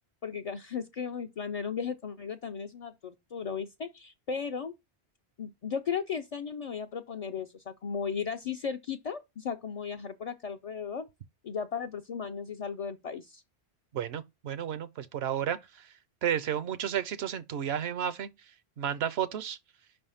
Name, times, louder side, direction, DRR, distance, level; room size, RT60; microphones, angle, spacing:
voice 1, 0.2-4.7 5.4-11.1 11.4-13.4, left 6 dB, 55° left, 0.4 m, -36 dB
voice 2, 13.9-15.9 16.2-18.3 18.8-19.6, right 9 dB, 75° right, 0.9 m, -32 dB
5.4 x 3.4 x 5.5 m
omnidirectional pair, 1.1 m